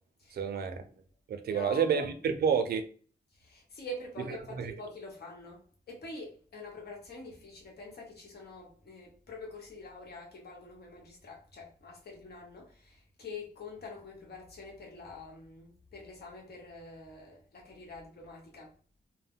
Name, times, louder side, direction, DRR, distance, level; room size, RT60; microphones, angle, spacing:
voice 1, 0.3-0.8 1.3-2.8 4.3-4.7, right 7 dB, 70° right, 0.4 m, -29 dB
voice 2, 1.5-2.1 3.4-18.7, left 2 dB, 75° left, 1.0 m, -46 dB
2.2 x 2.1 x 3.5 m
wide cardioid pair, 165°, 17 cm